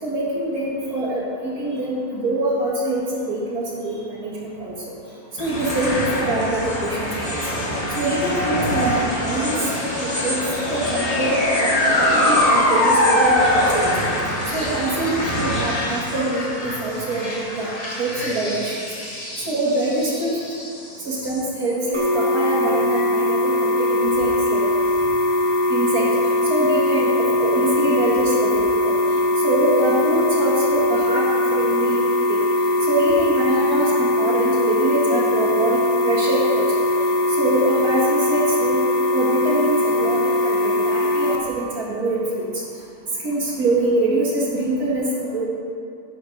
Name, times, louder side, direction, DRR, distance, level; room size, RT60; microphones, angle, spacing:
voice 1, 0.0-4.7 5.4-7.4 8.0-9.0 9.3-9.6 9.9-10.4 10.7-11.7 12.0-13.9 14.5-17.7 18.0-18.8 19.5-20.3 21.0-24.6 25.7-26.1 26.5-28.9 29.4-32.0 32.3-32.4 32.9-36.8 37.4-38.8 39.1-42.5 43.2-45.5, right 1 dB, 85° right, -5 dB, 2.5 m, -24 dB
sound 1, 5.4-21.8, left 1 dB, 25° left, 1.5 m, -23 dB
sound 2, 21.9-41.4, left 1 dB, 25° right, 0.8 m, -20 dB
10.0 x 6.4 x 5.3 m, 2.4 s
omnidirectional pair, 1.6 m